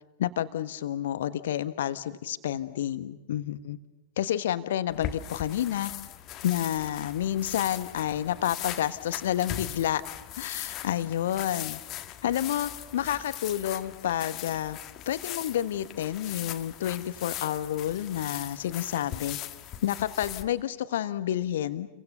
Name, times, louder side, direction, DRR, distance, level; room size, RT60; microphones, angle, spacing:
voice 1, 0.2-3.8 4.2-5.9 6.4-10.0 10.4-11.8 12.2-14.8 15.1-19.4 19.8-21.9, left 11 dB, 60° left, 13 dB, 1.3 m, -29 dB
sound 1, 4.9-20.4, left 12 dB, 35° left, 1.5 m, -40 dB
29.5 x 24.0 x 6.8 m, 0.96 s
figure-of-eight pair, 90°, 0 cm